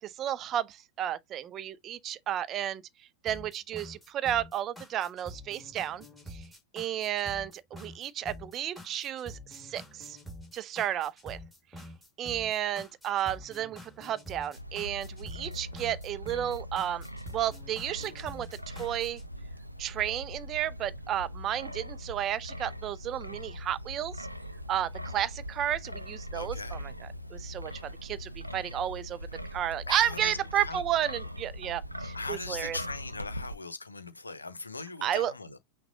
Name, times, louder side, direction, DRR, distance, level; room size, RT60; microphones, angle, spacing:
voice 1, 0.0-2.8 3.2-6.0 6.3-6.4 6.7-10.2 10.5-11.4 12.2-17.1 17.3-19.2 19.8-24.3 24.7-26.9 27.3-29.2 29.5-32.8 35.0-35.3, right 11 dB, 30° right, 0.5 m, -32 dB
sound 1, 3.3-19.3, equal, 5° left, 1.7 m, -47 dB
Wind, 14.6-33.5, equal, 90° right, 0.5 m, -41 dB
voice 2, 26.3-26.8 29.9-30.8 32.1-35.6, left 3 dB, 80° left, 0.7 m, -39 dB
6.0 x 2.3 x 3.8 m
figure-of-eight pair, 90°, 0 cm